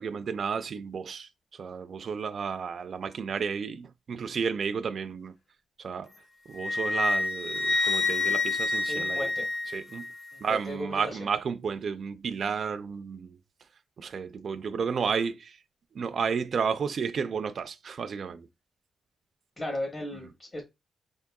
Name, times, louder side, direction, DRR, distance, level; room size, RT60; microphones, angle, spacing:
voice 1, 0.0-5.3 5.8-6.1 6.5-9.3 9.7-10.1 10.4-13.4 14.0-15.6 15.9-18.5, right 6 dB, 50° right, 0.3 m, -32 dB
Wind instrument woodwind instrument, 6.6-10.1, left 3 dB, 50° left, 0.6 m, -28 dB
voice 2, 8.9-9.5 10.3-11.2 19.6-20.6, left 1 dB, 35° left, 0.9 m, -36 dB
5.1 x 3.6 x 2.3 m
wide cardioid pair, 130°, 0 cm